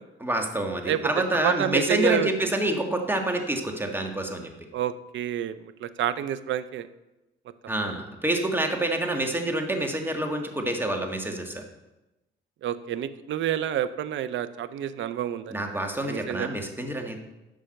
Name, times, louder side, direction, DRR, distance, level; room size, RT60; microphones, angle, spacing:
voice 1, 0.2-4.5 7.7-11.6 15.5-17.2, right 1 dB, 10° right, 3 dB, 1.7 m, -27 dB
voice 2, 1.4-2.3 4.7-6.9 12.6-15.6 16.0-16.5, right 11 dB, 70° right, 13 dB, 0.7 m, -28 dB
10.0 x 6.3 x 6.5 m, 1.0 s
cardioid pair, 90°, 20 cm